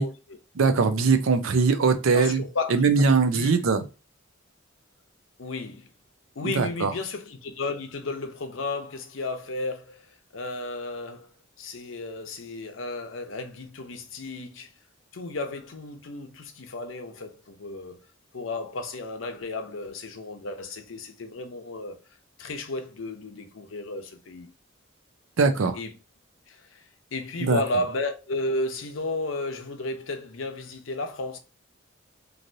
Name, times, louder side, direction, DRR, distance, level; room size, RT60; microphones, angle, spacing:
voice 1, 0.0-0.4 2.1-3.1 3.3-3.6 5.4-5.9 6.4-11.3 11.6-14.7 15.1-18.0 18.3-22.0 22.4-24.5 25.7-25.9 26.5-26.8 27.1-31.4, left 2 dB, 70° left, 0.6 m, -33 dB
voice 2, 0.6-2.4 2.7-3.8 6.4-6.9 25.4-25.8 27.4-27.6, right 4 dB, 85° right, 0.5 m, -21 dB
3.1 x 2.6 x 2.6 m
head